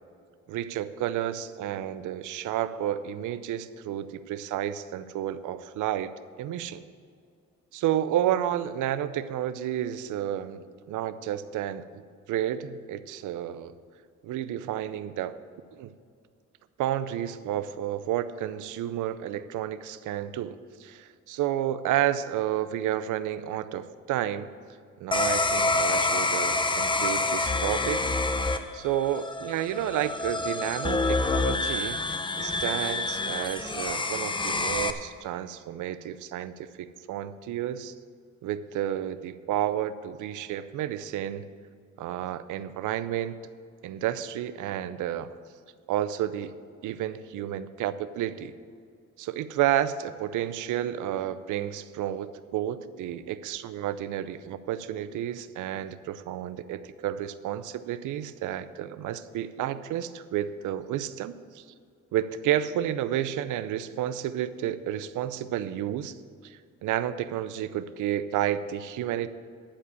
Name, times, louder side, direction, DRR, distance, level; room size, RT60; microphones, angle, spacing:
voice 1, 0.5-6.1 6.4-6.8 7.7-10.6 10.9-11.8 12.3-13.7 14.2-15.4 15.7-15.9 16.8-24.5 25.0-28.0 28.7-32.0 32.4-37.9 38.4-41.5 42.0-43.5 43.8-45.3 45.9-46.5 46.8-48.5 49.2-61.6 62.1-66.1 66.4-69.3, right 11 dB, 80° right, 13 dB, 0.6 m, -31 dB
sound 1, 25.1-34.9, left 3 dB, 15° left, 0.6 m, -27 dB
11.5 x 5.0 x 8.4 m, 2.2 s
cardioid pair, 90°, 30 cm